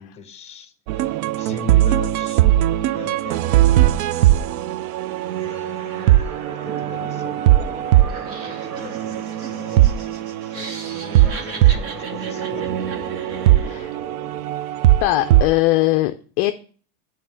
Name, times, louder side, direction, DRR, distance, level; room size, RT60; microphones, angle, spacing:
voice 1, 0.0-2.5 2.9-4.4 5.4-6.3 6.6-13.0, left 6 dB, 15° left, 0.8 m, -40 dB
sound 1, 0.9-15.5, right 14 dB, 75° right, 0.5 m, -19 dB
sound 2, 2.8-14.5, right 4 dB, 55° right, 1.6 m, -38 dB
Laughter, 8.1-13.9, right 3 dB, 30° right, 1.0 m, -38 dB
voice 2, 13.6-14.0 15.0-16.5, left 17 dB, 40° left, 0.4 m, -20 dB
8.6 x 3.8 x 6.8 m
supercardioid pair, 150°, 43 cm